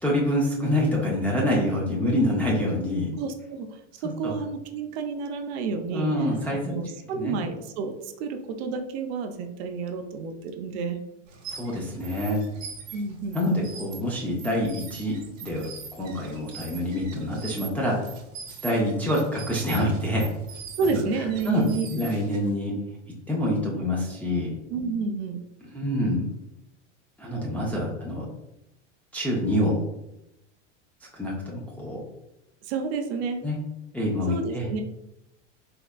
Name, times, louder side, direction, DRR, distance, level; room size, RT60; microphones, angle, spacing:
voice 1, 0.0-3.1 4.2-4.3 5.9-6.7 7.1-7.4 11.5-12.4 13.3-15.7 16.0-18.0 18.6-20.3 20.9-21.0 21.5-21.6 21.9-22.8 23.3-24.5 25.7-26.2 27.2-28.3 29.1-29.8 31.1-32.0 33.4-33.6 33.9-34.7, left 1 dB, 5° left, -5 dB, 0.3 m, -26 dB
voice 2, 3.1-11.0 12.9-13.6 20.8-21.9 24.7-25.4 32.6-33.4 34.3-34.8, right 4 dB, 55° right, 6 dB, 0.6 m, -30 dB
sound 1, 11.3-22.5, right 6 dB, 90° right, 1.0 m, -43 dB
3.6 x 3.1 x 2.2 m, 0.88 s
hypercardioid pair, 115°, 38 cm